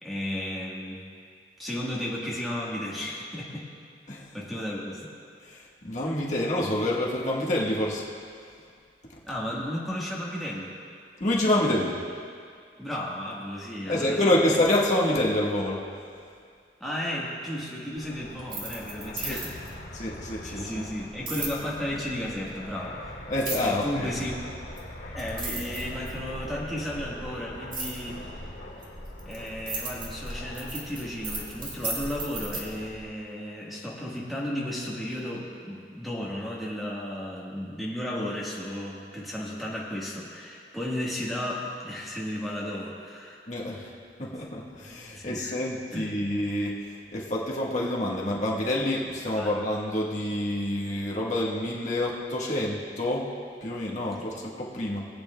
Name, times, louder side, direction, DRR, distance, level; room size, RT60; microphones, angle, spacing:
voice 1, 0.0-1.0 1.6-3.6 4.3-5.0 9.2-10.8 12.8-14.6 16.8-19.7 20.4-23.2 23.6-24.3 25.1-28.4 29.2-43.4 45.1-45.5 45.9-46.2 49.4-49.5, left 1 dB, ahead, -6 dB, 1.3 m, -34 dB
voice 2, 5.4-8.0 11.2-12.0 13.9-15.8 19.2-19.4 19.9-20.8 23.3-24.1 43.5-43.9 44.2-53.3 53.6-55.1, left 1 dB, 40° left, -4 dB, 1.3 m, -27 dB
Fixed-wing aircraft airplane, 18.0-33.1, left 1 dB, 90° left, 1.8 m, -42 dB
sound 1, 18.4-19.7 21.3-21.6 23.4-23.8 24.8-24.9 25.2-26.3 27.7-28.0 28.8-32.6, right 3 dB, 50° right, 1.9 m, -34 dB
21.5 x 8.7 x 2.2 m, 2.2 s
head